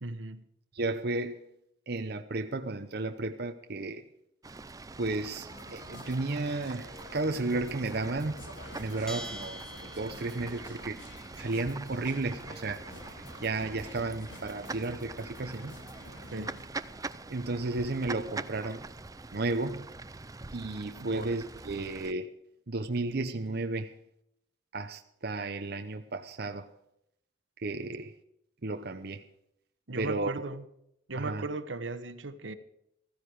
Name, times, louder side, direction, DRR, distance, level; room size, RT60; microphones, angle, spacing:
voice 1, 0.0-0.5 16.3-16.6 21.0-21.3 29.9-30.6 31.1-32.5, right 2 dB, 85° right, 1.2 m, -37 dB
voice 2, 0.7-1.4 1.9-4.0 5.0-11.0 11.3-15.8 17.3-18.8 19.3-19.9 20.5-22.3 22.7-24.0 24.7-26.7 27.6-28.2 28.6-29.3 30.0-30.4 31.2-31.5, right 2 dB, 55° right, 0.8 m, -33 dB
Fowl / Bird, 4.4-22.1, right 3 dB, 20° right, 0.5 m, -44 dB
sound 1, 5.5-16.6, left 1 dB, 85° left, 2.9 m, -49 dB
Bell, 9.1-10.6, right 1 dB, 5° left, 0.9 m, -44 dB
15.0 x 14.5 x 4.8 m
head